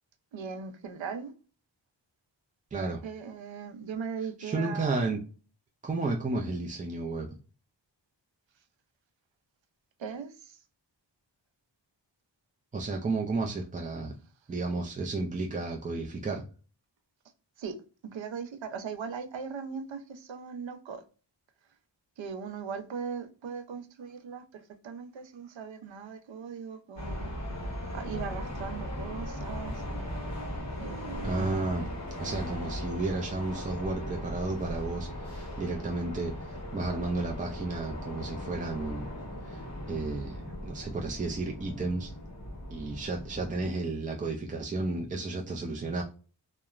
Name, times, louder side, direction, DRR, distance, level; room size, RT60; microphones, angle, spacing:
voice 1, 0.3-1.3 3.0-5.0 10.0-10.6 17.6-17.8 18.0-21.0 22.2-27.3 27.9-29.8 30.8-31.5, right 6 dB, 85° right, 7 dB, 0.6 m, -39 dB
voice 2, 2.7-3.0 4.4-5.2 5.8-7.3 12.7-14.1 14.5-16.4 31.2-31.9 32.2-39.1 39.4-39.6 39.9-42.1 42.7-46.0, right 3 dB, 20° right, 0 dB, 0.3 m, -32 dB
sound 1, 27.0-43.7, left 1 dB, 40° left, 1.1 m, -38 dB
2.8 x 2.1 x 2.3 m, 0.37 s
wide cardioid pair, 80°, 45 cm